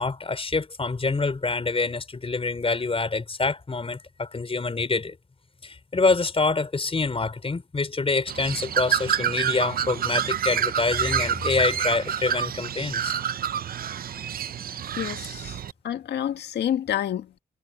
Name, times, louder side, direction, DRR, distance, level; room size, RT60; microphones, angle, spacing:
voice 1, 0.0-5.2 5.6-13.1, left 3 dB, 35° left, 5.4 m, -26 dB
Bird, 8.3-15.7, right 9 dB, 60° right, 0.8 m, -28 dB
voice 2, 15.0-17.4, left 10 dB, 75° left, 1.9 m, -29 dB
supercardioid pair, 60°, 17 cm